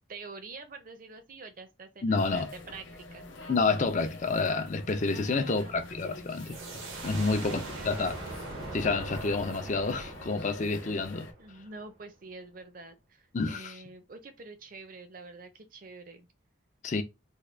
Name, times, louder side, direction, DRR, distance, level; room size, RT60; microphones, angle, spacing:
voice 1, 0.1-3.3 5.1-6.3 7.1-8.2 11.4-16.3, right 3 dB, 45° right, 0.6 m, -47 dB
voice 2, 2.0-2.5 3.5-6.6 7.0-8.2 8.7-11.3 13.3-13.8 16.8-17.0, left 3 dB, 40° left, 0.5 m, -29 dB
sound 1, 2.1-11.3, left 2 dB, 75° left, 0.7 m, -47 dB
sound 2, 6.3-11.8, right 2 dB, 90° right, 1.1 m, -41 dB
3.6 x 2.2 x 3.3 m
head